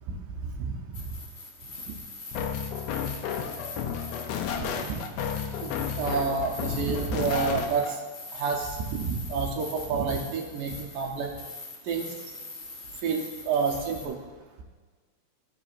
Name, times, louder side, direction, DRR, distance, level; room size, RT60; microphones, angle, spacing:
voice 1, 0.6-1.0 4.6-5.0 5.6-8.0 8.3-11.3 11.9-12.1 13.0-14.2, right 5 dB, 85° right, -1 dB, 2.3 m, -29 dB
sound 1, 0.9-14.1, left 2 dB, 50° left, 0.8 m, -42 dB
sound 2, 2.3-8.0, left 8 dB, 85° left, 1.5 m, -32 dB
12.5 x 5.1 x 2.5 m, 1.4 s
omnidirectional pair, 3.7 m